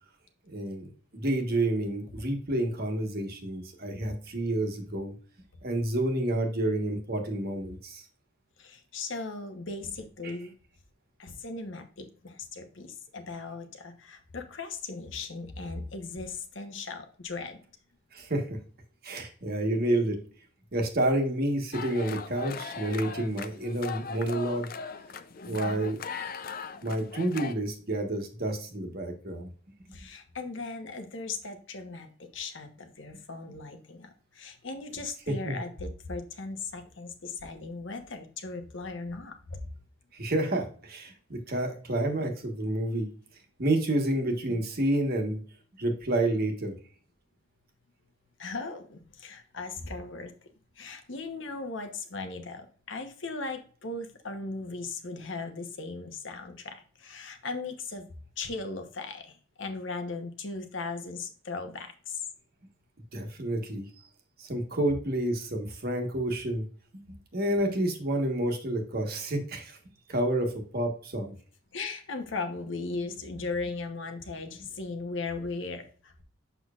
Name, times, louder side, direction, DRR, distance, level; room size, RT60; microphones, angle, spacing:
voice 1, 0.5-5.1 5.6-8.0 10.2-10.3 18.1-18.6 19.0-20.2 20.7-24.7 25.4-26.0 26.8-29.5 35.3-35.6 40.1-43.1 43.6-45.4 45.8-46.7 63.1-63.8 64.4-66.7 67.1-69.8 70.1-71.3, right 1 dB, 50° right, 4 dB, 1.3 m, -29 dB
voice 2, 8.6-10.5 11.2-17.6 25.4-25.9 29.9-32.1 32.3-39.6 44.5-44.6 48.4-50.3 50.8-58.0 58.4-62.2 71.7-76.2, left 3 dB, 65° left, 6 dB, 1.0 m, -38 dB
sound 1, 21.7-27.6, left 5 dB, 45° left, 0.5 m, -39 dB
6.9 x 6.1 x 2.4 m, 0.43 s
head